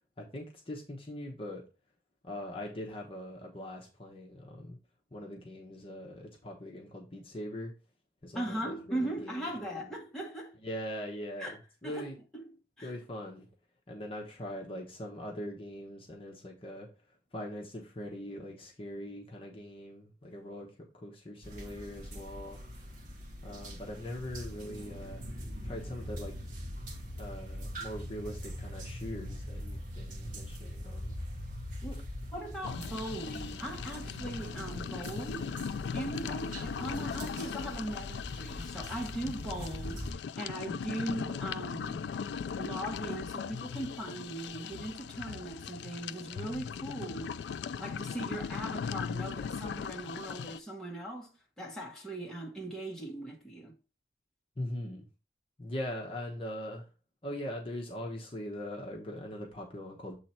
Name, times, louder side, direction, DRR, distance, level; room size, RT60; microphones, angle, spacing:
voice 1, 0.2-1.6 2.2-4.8 5.1-7.7 8.2-9.9 10.6-11.5 11.8-12.1 12.8-13.5 13.9-22.6 23.4-25.2 25.6-26.3 27.2-31.1 54.6-55.1 55.6-56.9 57.2-60.2, left 1 dB, 30° left, 1.0 m, -41 dB
voice 2, 8.3-10.6 11.4-11.6 11.8-12.4 12.8-12.9 31.8-35.5 35.9-42.0 42.6-47.5 47.8-53.7, right 1 dB, 5° left, 1.3 m, -39 dB
sound 1, 21.4-40.1, equal, 45° right, 1.1 m, -42 dB
sound 2, 32.6-50.6, left 6 dB, 80° left, 0.3 m, -39 dB
7.5 x 3.2 x 4.3 m
head